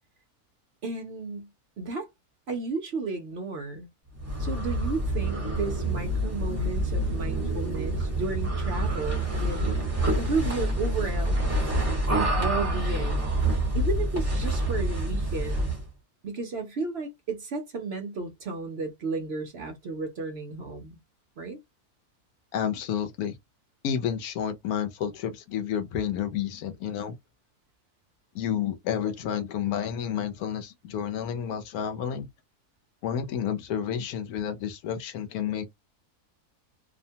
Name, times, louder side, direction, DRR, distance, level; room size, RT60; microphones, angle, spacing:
voice 1, 0.8-1.5 1.8-2.1 2.5-3.9 4.4-9.7 10.2-11.4 12.1-13.3 13.7-15.7 16.2-21.0 21.4-21.6, right 4 dB, 60° right, 0.7 m, -33 dB
sound 1, 4.2-15.9, right 1 dB, 10° right, 1.1 m, -27 dB
voice 2, 22.5-23.3 23.8-27.1 28.3-32.3 33.0-35.7, left 8 dB, 75° left, 1.1 m, -30 dB
2.8 x 2.1 x 2.7 m
omnidirectional pair, 1.6 m